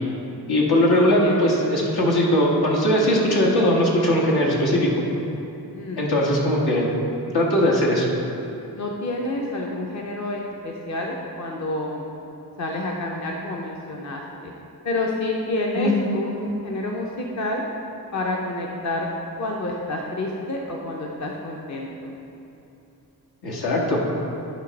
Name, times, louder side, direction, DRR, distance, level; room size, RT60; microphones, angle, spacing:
voice 1, 0.5-4.9 6.0-6.9 7.3-8.1 15.8-15.9 23.4-24.0, left 1 dB, 80° left, -3 dB, 1.5 m, -20 dB
voice 2, 1.0-1.4 5.7-6.1 8.7-12.0 12.6-14.5 14.8-17.6 18.1-19.1 19.4-22.1, left 2 dB, 50° left, -1 dB, 0.8 m, -29 dB
9.8 x 3.3 x 5.2 m, 2.9 s
wide cardioid pair, 100°, 37 cm